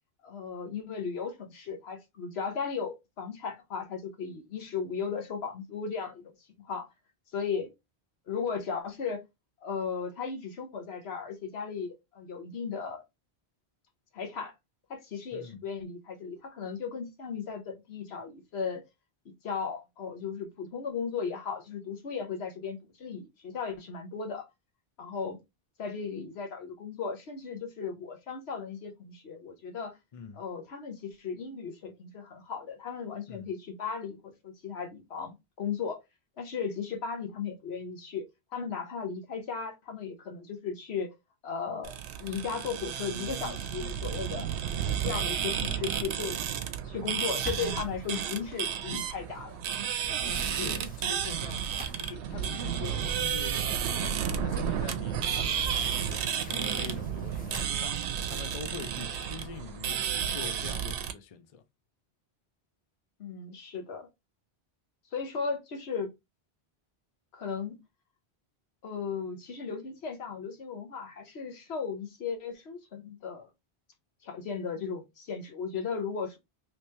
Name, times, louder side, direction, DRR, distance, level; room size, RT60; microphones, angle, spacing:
voice 1, 0.2-6.9 7.3-7.7 8.3-9.2 9.6-13.0 14.1-14.5 14.9-18.8 19.2-24.5 25.0-25.4 25.8-30.0 30.4-36.0 36.4-38.3 38.5-41.1 41.4-44.5 45.0-46.4 46.8-49.6 50.2-50.4 63.2-64.1 65.1-66.1 67.3-67.8 68.8-73.5 74.2-76.4, left 6 dB, 75° left, 1.1 m, -36 dB
voice 2, 15.3-15.6 30.1-30.4 33.3-33.5 50.6-61.6, left 6 dB, 50° left, 0.4 m, -44 dB
sound 1, 41.8-61.1, right 8 dB, 85° right, 0.8 m, -32 dB
sound 2, 47.3-49.5 49.9-52.3 52.9-53.0 53.5-53.6 55.0-59.3, right 1 dB, 10° left, 0.8 m, -44 dB
3.2 x 2.9 x 3.2 m
omnidirectional pair, 1.1 m